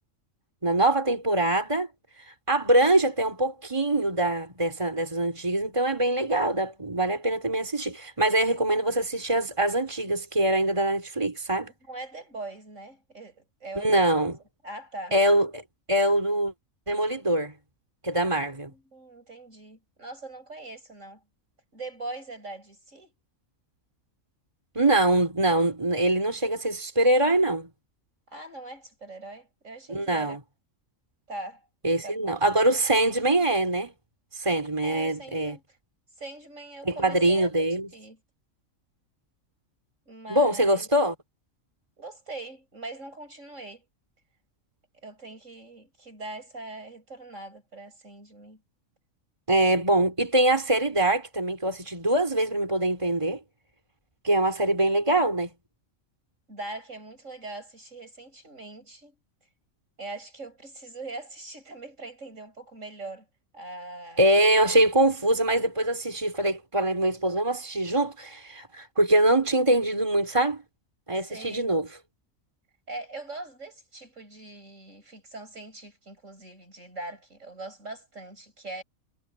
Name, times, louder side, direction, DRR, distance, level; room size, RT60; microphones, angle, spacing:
voice 1, 0.6-1.9 2.5-11.7 13.8-14.4 15.1-15.6 15.9-16.5 16.9-17.5 18.0-18.7 24.8-27.7 29.9-30.4 31.8-33.9 34.3-35.6 36.8-37.9 40.3-41.2 49.5-53.4 54.2-55.5 64.2-70.6 71.1-71.9, right 1 dB, 20° right, 3.8 m, -23 dB
voice 2, 11.9-14.3 14.6-15.2 18.7-21.2 21.7-23.1 28.3-30.4 31.3-31.6 32.0-32.3 34.7-35.8 36.2-37.5 37.9-38.2 40.1-40.9 42.0-43.8 45.0-48.6 56.5-59.2 60.0-63.3 63.5-64.3 71.2-71.7 72.9-78.8, right 2 dB, 65° right, 8.1 m, -41 dB
omnidirectional pair, 1.4 m